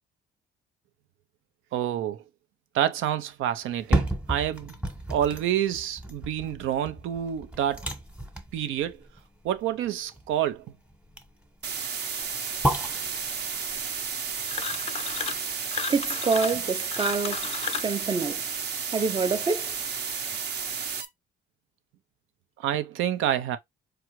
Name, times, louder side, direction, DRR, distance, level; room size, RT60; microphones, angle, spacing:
voice 1, 1.7-2.2 2.7-4.7 5.1-7.9 8.5-9.0 9.4-10.7 22.6-23.6, right 11 dB, 85° right, 0.6 m, -28 dB
sound 1, 3.6-15.7 16.1-16.2, right 1 dB, 5° right, 1.0 m, -33 dB
sound 2, 11.6-21.0, right 6 dB, 55° right, 0.8 m, -32 dB
sound 3, 14.5-15.4 15.7-17.9, left 7 dB, 30° left, 0.4 m, -34 dB
voice 2, 15.9-17.5 17.8-18.4 18.9-19.7, right 4 dB, 25° right, 0.5 m, -26 dB
4.6 x 2.4 x 3.0 m
cardioid pair, 90°, 20 cm